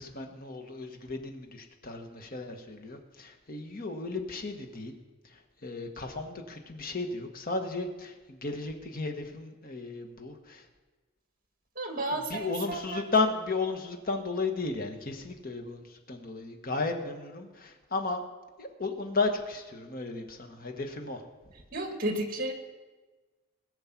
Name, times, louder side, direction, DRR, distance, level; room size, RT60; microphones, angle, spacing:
voice 1, 0.0-4.9 5.2-10.7 12.3-18.2 18.6-21.2, left 3 dB, 45° left, 4 dB, 1.5 m, -34 dB
voice 2, 11.8-13.0 21.7-22.5, right 1 dB, 45° right, 4 dB, 2.0 m, -32 dB
20.0 x 6.8 x 6.0 m, 1.2 s
head